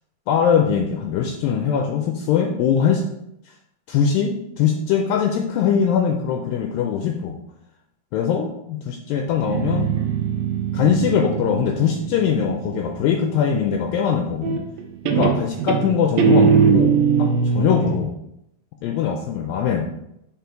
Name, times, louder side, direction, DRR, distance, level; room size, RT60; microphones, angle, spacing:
voice 1, 0.3-3.0 3.9-7.4 8.1-9.9 10.7-14.6 15.0-18.1 18.8-19.9, left 7 dB, 80° left, 3 dB, 2.1 m, -21 dB
Guitar, 9.3-12.9 14.4-14.8 15.1-18.0, right 6 dB, 80° right, 2.2 m, -20 dB
5.3 x 4.9 x 4.5 m, 0.81 s
omnidirectional pair, 4.4 m